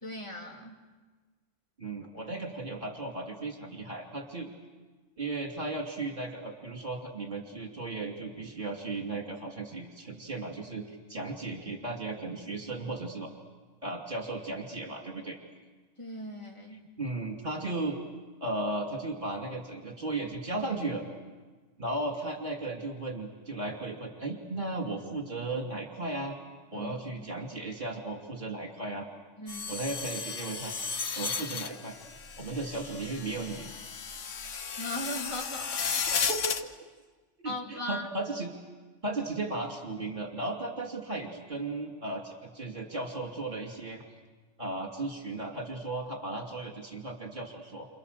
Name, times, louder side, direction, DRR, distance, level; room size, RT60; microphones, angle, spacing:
voice 1, 0.0-0.8 16.0-16.9 26.7-27.3 29.4-29.7 34.8-36.1 37.4-38.1, left 1 dB, 25° left, 0 dB, 2.8 m, -39 dB
voice 2, 1.8-4.5 5.2-13.3 13.8-15.4 17.0-18.0 18.4-21.1 21.8-26.4 26.7-29.1 29.7-30.7 31.2-31.9 32.4-33.7 36.1-36.5 37.4-38.5 39.0-44.0 44.6-47.9, right 2 dB, 40° right, 1 dB, 2.8 m, -35 dB
sound 1, 29.5-36.6, left 6 dB, 80° left, 1.4 m, -34 dB
29.5 x 27.0 x 6.8 m, 1.3 s
omnidirectional pair, 1.3 m